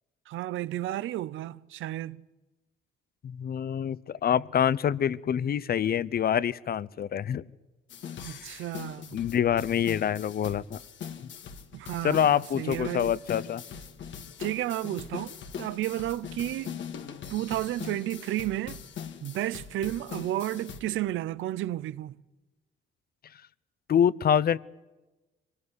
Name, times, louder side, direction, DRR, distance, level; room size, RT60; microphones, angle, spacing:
voice 1, 0.3-2.2 8.2-9.2 11.7-13.1 14.4-16.8 17.3-18.8 19.2-22.2, right 14 dB, 85° right, 0.8 m, -32 dB
voice 2, 3.2-7.4 8.3-8.6 9.1-10.8 12.0-13.6 23.9-24.6, left 9 dB, 50° left, 0.8 m, -26 dB
sound 1, 7.9-20.8, left 7 dB, 70° left, 2.1 m, -41 dB
24.0 x 19.5 x 9.6 m
cardioid pair, 90°, 20 cm